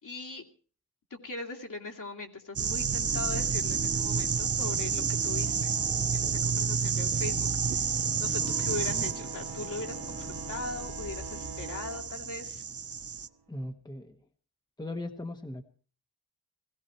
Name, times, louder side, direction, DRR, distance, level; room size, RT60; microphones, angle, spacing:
voice 1, 0.0-0.4 1.1-5.7 6.1-12.6, left 3 dB, 60° left, 0 dB, 2.6 m, -40 dB
sound 1, 2.6-13.3, right 6 dB, 40° right, 0.6 m, -30 dB
sound 2, 3.0-12.7, right 1 dB, 15° right, 1.4 m, -45 dB
sound 3, 8.4-13.5, right 4 dB, 80° right, 1.3 m, -46 dB
voice 2, 13.5-14.2 14.8-15.6, left 1 dB, 10° left, 5 dB, 1.2 m, -38 dB
17.5 x 16.5 x 4.5 m, 0.41 s
wide cardioid pair, 95°, 36 cm